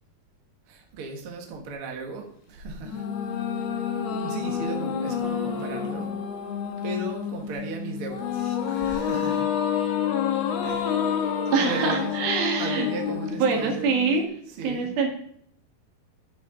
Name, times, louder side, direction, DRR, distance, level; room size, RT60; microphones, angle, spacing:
voice 1, 0.7-3.1 3.3-3.4 4.1-6.1 6.8-9.5 10.6-12.1 12.6-14.0 14.6-14.9, right 4 dB, 50° right, 2 dB, 1.7 m, -36 dB
sound 1, 2.9-14.2, left 8 dB, 65° left, 1.7 m, -28 dB
voice 2, 11.5-12.9 13.4-14.2 14.6-15.1, right 5 dB, 70° right, 2 dB, 3.5 m, -24 dB
10.0 x 8.9 x 3.8 m, 0.67 s
omnidirectional pair, 4.5 m